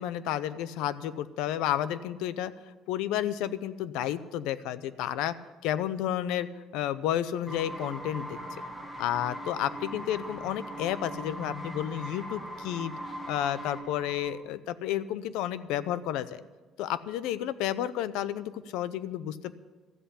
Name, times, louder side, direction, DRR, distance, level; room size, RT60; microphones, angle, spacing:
voice 1, 0.0-2.5 2.9-5.3 5.6-6.5 6.7-8.3 9.0-12.9 13.3-16.4 16.8-19.5, left 11 dB, 90° left, 16 dB, 0.6 m, -31 dB
sound 1, 7.5-14.4, equal, 15° left, 2.1 m, -40 dB
13.5 x 8.0 x 9.9 m, 1.3 s
cardioid pair, 135°, 0 cm